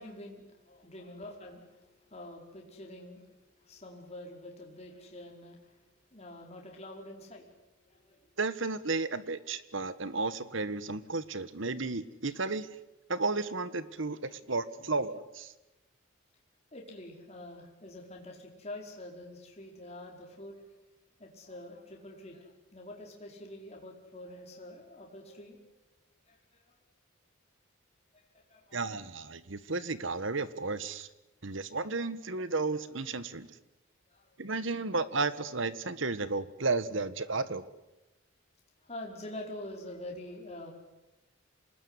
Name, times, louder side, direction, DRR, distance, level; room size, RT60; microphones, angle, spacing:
voice 1, 0.0-5.8 6.1-7.5 7.8-8.2 16.7-20.6 21.2-25.6 26.3-26.8 28.1-28.9 31.8-31.9 34.1-34.2 38.8-40.7, left 1 dB, 30° left, 0 dB, 4.9 m, -46 dB
voice 2, 8.4-12.7 13.1-15.5 28.7-31.1 31.4-33.5 34.4-37.6, right 3 dB, 65° right, 15 dB, 1.5 m, -33 dB
27.0 x 20.0 x 9.9 m, 0.99 s
head